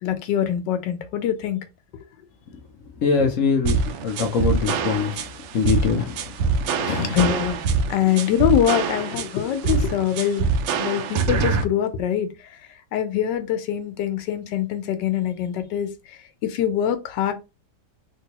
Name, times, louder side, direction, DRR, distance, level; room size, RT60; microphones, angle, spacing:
voice 1, 0.0-1.6 6.7-7.6 7.9-10.4 10.7-12.3 12.9-15.9 16.4-17.3, left 10 dB, 85° left, 1.3 m, -23 dB
voice 2, 3.0-3.8 4.0-5.2 5.5-6.2 6.7-7.2, left 5 dB, 65° left, 0.8 m, -22 dB
sound 1, 3.6-11.6, right 5 dB, 90° right, 1.2 m, -24 dB
3.6 x 2.7 x 2.9 m
omnidirectional pair, 1.9 m